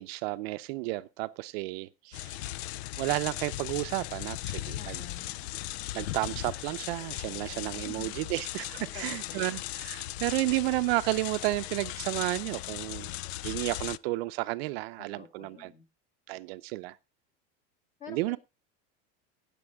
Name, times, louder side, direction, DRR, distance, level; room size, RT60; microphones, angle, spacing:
voice 1, 0.0-2.5 3.0-5.0 5.9-13.1 13.4-15.7 16.3-17.0 18.1-18.4, right 20 dB, 65° right, 0.7 m, -32 dB
sound 1, 2.1-14.0, left 16 dB, 80° left, 0.5 m, -38 dB
voice 2, 4.8-5.4 7.8-8.2 8.8-9.5 15.1-15.9 18.0-18.4, left 7 dB, 25° left, 2.0 m, -48 dB
18.0 x 7.0 x 3.5 m
supercardioid pair, 165°, 32 cm